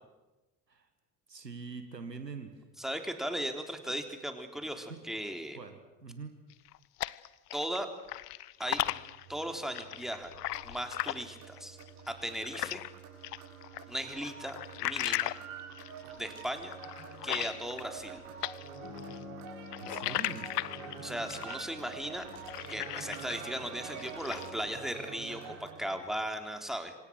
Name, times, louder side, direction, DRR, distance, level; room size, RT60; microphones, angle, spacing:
voice 1, 1.3-2.6 3.8-3.9 4.9-5.0 5.5-6.4 19.8-20.5, right 4 dB, 85° right, 8 dB, 1.7 m, -44 dB
voice 2, 2.8-5.6 7.5-7.9 8.6-9.0 9.3-10.4 10.6-11.8 12.1-12.8 13.9-14.6 14.8-15.4 16.2-16.7 17.2-18.2 21.0-22.3 22.7-27.0, equal, ahead, 5 dB, 3.5 m, -37 dB
sound 1, 6.5-7.8 8.1-12.9 13.2-18.1 18.4-23.5 23.9-24.6, left 16 dB, 70° left, 0.7 m, -37 dB
sound 2, 8.6-26.0, right 6 dB, 65° right, 7.1 m, -47 dB
sound 3, 17.0-23.8, left 10 dB, 45° left, 2.3 m, -53 dB
28.0 x 25.5 x 6.4 m, 1.1 s
figure-of-eight pair, 55°, 48 cm